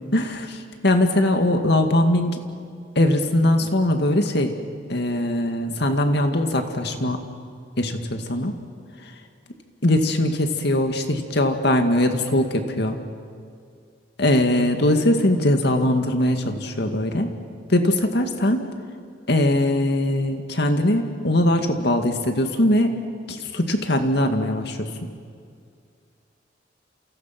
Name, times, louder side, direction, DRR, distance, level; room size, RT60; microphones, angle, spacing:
voice 1, 0.1-2.5 3.0-4.5 4.9-7.2 7.8-8.5 9.8-13.0 14.2-17.3 17.7-18.7 19.3-23.0 23.3-25.1, left 1 dB, 60° left, 6 dB, 2.1 m, -21 dB
29.0 x 28.0 x 6.0 m, 2.3 s
head